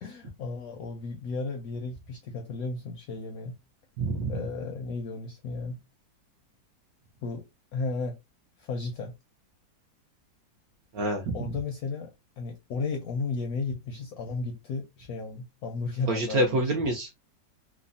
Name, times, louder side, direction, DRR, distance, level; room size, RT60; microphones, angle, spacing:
voice 1, 0.0-3.6 4.3-5.8 7.2-7.4 7.7-8.2 8.6-9.1 11.3-16.7, left 4 dB, 75° left, 0.8 m, -34 dB
voice 2, 4.0-4.4 10.9-11.4 16.1-17.2, right 1 dB, 70° right, 0.9 m, -27 dB
3.2 x 2.0 x 2.5 m
omnidirectional pair, 2.1 m